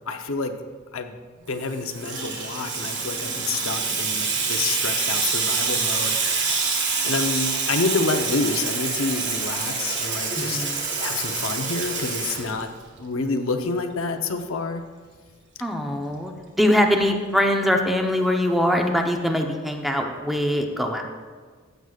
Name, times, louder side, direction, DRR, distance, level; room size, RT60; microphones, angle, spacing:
voice 1, 0.1-0.6 0.9-1.1 1.5-6.7 7.0-10.6 11.0-12.7 13.0-14.8, left 3 dB, 70° left, 6 dB, 0.8 m, -28 dB
Water tap faucet / Sink (filling or washing), 1.6-13.0, right 4 dB, 60° right, 1.6 m, -26 dB
voice 2, 10.3-10.8 15.6-16.3 16.6-21.0, left 1 dB, ahead, 3 dB, 0.8 m, -22 dB
15.5 x 7.9 x 2.4 m, 1.5 s
head